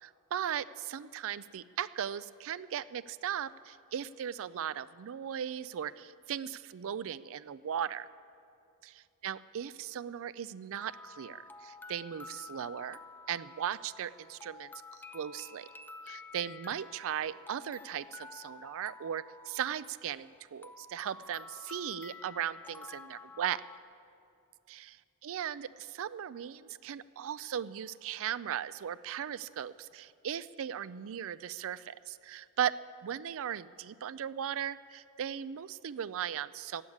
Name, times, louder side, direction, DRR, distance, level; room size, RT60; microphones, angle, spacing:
voice 1, 0.0-8.1 9.2-13.0 13.3-15.7 16.1-23.6 24.7-25.0 25.2-36.8, right 9 dB, 65° right, 16 dB, 0.4 m, -37 dB
sound 1, 10.7-23.8, left 3 dB, 10° left, 0.4 m, -50 dB
16.0 x 8.0 x 9.9 m, 2.5 s
head